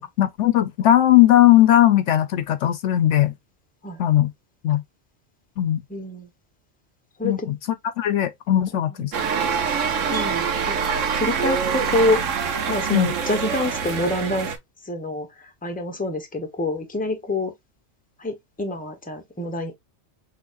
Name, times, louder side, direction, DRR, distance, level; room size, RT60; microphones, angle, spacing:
voice 1, 0.0-3.3 4.0-4.3 4.6-4.8 5.6-5.8 7.2-7.5 8.0-9.1 12.9-13.1, left 13 dB, 70° left, 0.9 m, -18 dB
voice 2, 5.9-6.3 7.2-7.5 9.0-9.1 10.1-10.8 11.1-12.2 12.7-14.5 14.8-17.5 18.2-19.7, left 2 dB, 5° left, 0.9 m, -26 dB
sound 1, 9.1-14.6, right 6 dB, 75° right, 1.3 m, -25 dB
6.2 x 3.1 x 2.5 m
omnidirectional pair, 1.3 m